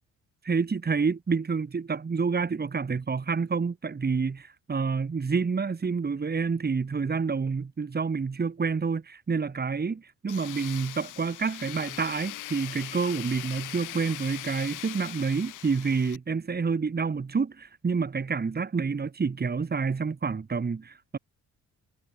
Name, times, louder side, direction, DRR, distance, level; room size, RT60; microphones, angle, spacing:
voice 1, 0.4-21.2, right 5 dB, 30° right, 3.9 m, -28 dB
Tools, 10.3-16.2, left 16 dB, 85° left, 2.0 m, -40 dB
cardioid pair, 90°, 30 cm